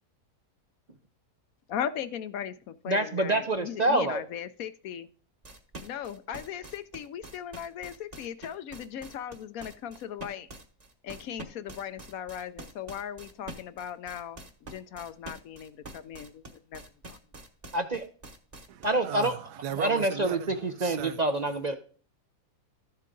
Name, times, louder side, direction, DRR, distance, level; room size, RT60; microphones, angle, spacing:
voice 1, 1.7-5.1 5.8-10.5 11.0-14.5 14.7-16.8 17.1-17.2, left 9 dB, 70° left, 1.0 m, -38 dB
voice 2, 2.9-4.2 17.7-18.1 18.8-19.3 19.8-21.8, right 2 dB, 45° right, 0.5 m, -26 dB
sound 1, 5.4-19.0, right 1 dB, 25° right, 1.1 m, -45 dB
voice 3, 18.7-21.2, right 9 dB, 80° right, 1.2 m, -37 dB
13.0 x 7.5 x 3.8 m
omnidirectional pair, 1.7 m